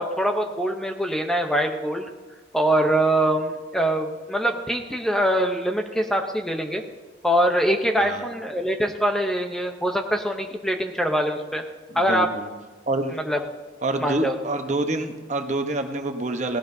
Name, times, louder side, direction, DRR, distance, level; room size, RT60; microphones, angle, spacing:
voice 1, 0.0-2.1 2.5-6.8 7.2-11.6 11.9-12.3 13.1-13.4 14.0-14.4, right 1 dB, 5° left, 4 dB, 0.7 m, -23 dB
voice 2, 11.9-12.5 12.9-13.1 13.8-16.6, right 2 dB, 40° right, 5 dB, 1.0 m, -27 dB
18.0 x 17.0 x 2.7 m, 1.3 s
head